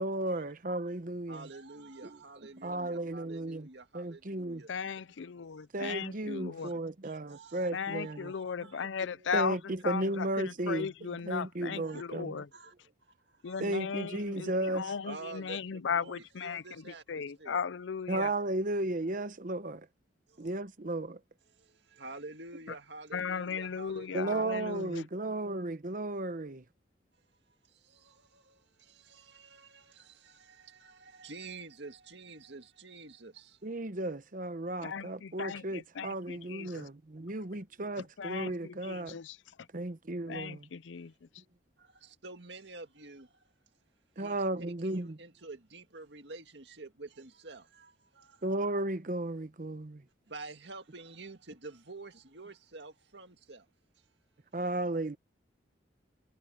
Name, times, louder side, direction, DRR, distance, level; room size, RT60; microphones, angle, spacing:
voice 1, 0.0-1.5 2.6-3.7 3.9-4.6 5.7-8.3 8.6-8.7 9.3-12.4 13.6-14.9 18.1-19.9 20.4-21.2 24.1-26.6 33.6-39.2 39.7-40.7 44.2-45.2 48.4-50.0 54.5-55.2, right 2 dB, 45° right, 1.0 m, -34 dB
voice 2, 1.3-4.7 6.6-6.7 7.0-8.9 11.8-12.0 12.5-12.7 13.0-13.8 15.0-17.6 20.3-20.6 21.5-24.6 27.7-33.6 41.8-43.4 44.2-48.5 50.3-53.7 54.0-54.1, right 3 dB, 65° right, 2.1 m, -49 dB
voice 3, 4.7-6.7 7.7-9.6 9.8-10.0 10.4-12.5 13.4-14.5 14.7-16.6 17.1-18.3 23.1-25.0 34.8-36.8 38.2-39.3 40.3-41.1, left 6 dB, 85° left, 0.5 m, -36 dB
head